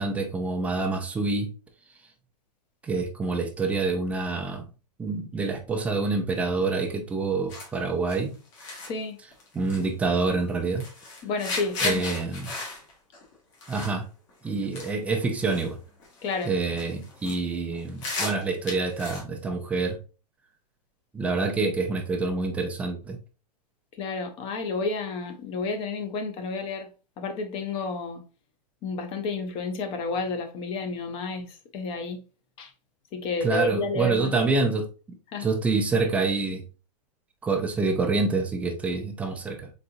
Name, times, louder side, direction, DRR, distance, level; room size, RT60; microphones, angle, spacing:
voice 1, 0.0-1.5 2.8-4.7 5.0-8.3 9.5-10.8 11.8-12.5 13.7-14.1 14.4-15.8 16.4-20.0 21.1-23.2 33.4-34.9 35.4-36.6 37.4-39.7, right 3 dB, 5° right, 0.4 m, -27 dB
sound 1, 7.5-7.7 8.1-8.2 8.5-8.9 9.3-9.8 10.2-10.4 10.8-14.0 14.3-14.5 14.7-14.9 15.2-15.7 16.0-16.5 16.7-17.4 17.7-19.2, left 3 dB, 45° left, 1.8 m, -34 dB
voice 2, 8.9-9.2 11.2-12.1 16.2-16.5 21.4-21.5 24.0-26.9 27.2-28.2 28.8-31.5 31.7-32.2 32.6-32.7 33.1-34.3 35.3-35.5, left 3 dB, 25° left, 0.7 m, -30 dB
4.2 x 3.8 x 2.6 m
hypercardioid pair, 155°, 21 cm